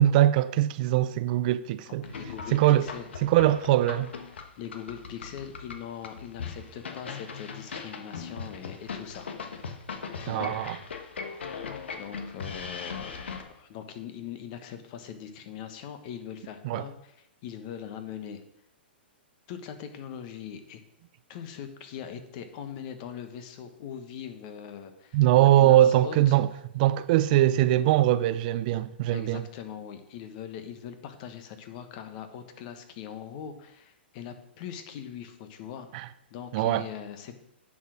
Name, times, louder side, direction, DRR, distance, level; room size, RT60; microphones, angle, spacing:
voice 1, 0.0-2.0 2.5-2.9 3.2-4.1 10.3-10.8 16.6-16.8 25.1-26.5 26.7-29.4 35.9-36.1 36.5-36.9, right 13 dB, 50° right, 0.5 m, -22 dB
voice 2, 1.9-3.1 4.6-9.3 9.5-9.8 10.2-10.6 11.9-17.1 17.4-18.4 19.5-20.8 21.3-26.4 29.1-37.4, left 8 dB, 45° left, 1.3 m, -41 dB
sound 1, 2.0-13.4, left 5 dB, 80° left, 1.3 m, -39 dB
9.9 x 5.0 x 6.3 m
hypercardioid pair, 125°, 6 cm